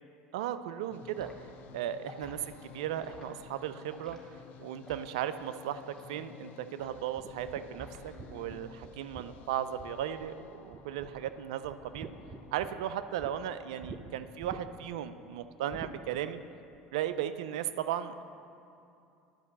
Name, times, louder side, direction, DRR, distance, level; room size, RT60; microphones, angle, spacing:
voice 1, 0.3-1.3 1.7-4.2 4.6-12.1 12.5-16.4 16.9-18.2, right 10 dB, 80° right, 12 dB, 0.4 m, -36 dB
sound 1, 0.9-12.7, left 10 dB, 60° left, 0.4 m, -54 dB
Liquid, 1.2-1.4 2.0-2.4 3.0-3.3 3.9-4.2 4.8-5.1 5.9-6.1 6.8-7.1 7.7-8.2 8.5-8.8, left 1 dB, 15° left, 2.1 m, -51 dB
sound 2, 7.2-10.4 10.7-11.3 11.6-13.3 13.8-14.0 14.4-14.9 15.7-16.0, right 4 dB, 35° right, 0.8 m, -47 dB
10.5 x 5.3 x 7.2 m, 2.7 s
hypercardioid pair, 80°, 3 cm